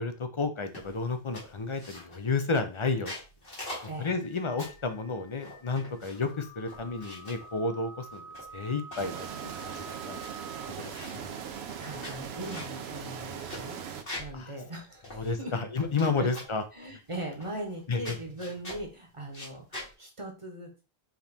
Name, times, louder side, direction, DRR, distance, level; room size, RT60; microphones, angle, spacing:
voice 1, 0.0-3.1 4.0-8.2 8.5-9.3 9.5-10.2 10.8-11.3 14.3-14.5 15.1-16.6 17.9-18.2, left 4 dB, 40° left, 8 dB, 0.5 m, -31 dB
sound 1, 0.7-1.0 1.3-2.3 2.8-4.9 5.4-6.3 6.7-7.5 8.1-9.1 9.6-9.7 9.9-10.3 10.6-11.3 11.8-14.4 14.7-14.8 15.0-16.1 16.3-16.6 17.4-17.8 18.0-18.9 19.3-19.9, left 1 dB, 65° left, 2.2 m, -43 dB
sound 2, 4.2-10.7, right 3 dB, 80° left, 1.1 m, -48 dB
sound 3, 9.0-14.0, right 8 dB, 85° right, 0.9 m, -39 dB
voice 2, 11.8-15.5 16.0-16.3 16.7-20.7, right 1 dB, 30° right, 2 dB, 1.0 m, -40 dB
4.8 x 3.0 x 3.4 m, 0.32 s
omnidirectional pair, 1.0 m